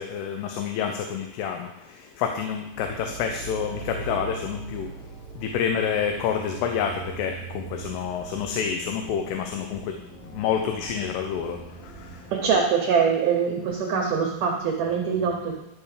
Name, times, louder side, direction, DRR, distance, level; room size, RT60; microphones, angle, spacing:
voice 1, 0.0-4.9 5.4-9.9 10.3-12.2, left 7 dB, 90° left, 4 dB, 2.8 m, -28 dB
sound 1, 2.7-12.6, right 4 dB, 10° left, 2.1 m, -41 dB
voice 2, 12.3-15.6, right 6 dB, 70° right, 1 dB, 2.0 m, -23 dB
11.5 x 5.4 x 4.9 m, 0.87 s
omnidirectional pair, 4.6 m